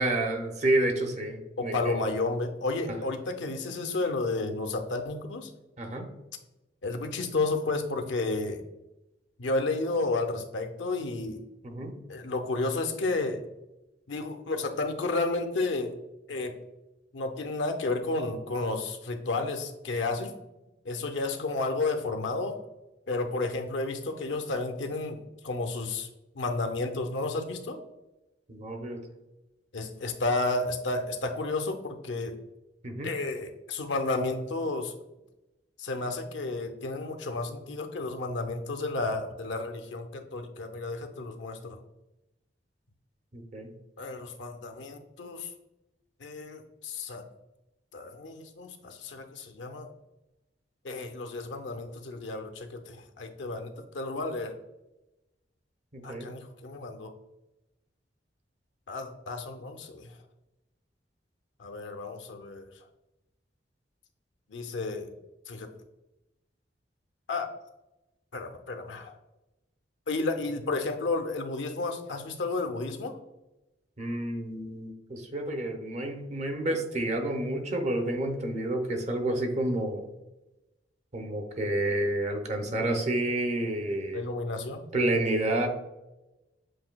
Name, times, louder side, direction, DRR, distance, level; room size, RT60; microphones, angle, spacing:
voice 1, 0.0-2.0 5.8-6.1 11.6-11.9 28.5-29.0 32.8-33.1 43.3-43.7 55.9-56.3 74.0-80.1 81.1-84.2 84.9-85.7, right 1 dB, 40° right, 4 dB, 0.7 m, -29 dB
voice 2, 1.6-5.5 6.8-8.6 9.4-11.4 12.1-13.4 14.1-16.0 16.3-16.6 17.1-20.3 20.9-22.6 23.1-26.1 26.4-27.8 29.7-32.4 33.0-34.9 35.8-41.8 44.0-45.5 46.2-47.2 47.9-49.9 50.8-54.5 56.0-57.1 58.9-60.1 61.6-62.7 64.5-65.1 65.5-65.7 67.3-67.5 68.3-69.2 70.1-73.1 84.1-84.9, left 3 dB, 80° left, 6 dB, 0.6 m, -32 dB
7.6 x 2.6 x 2.2 m, 0.97 s
head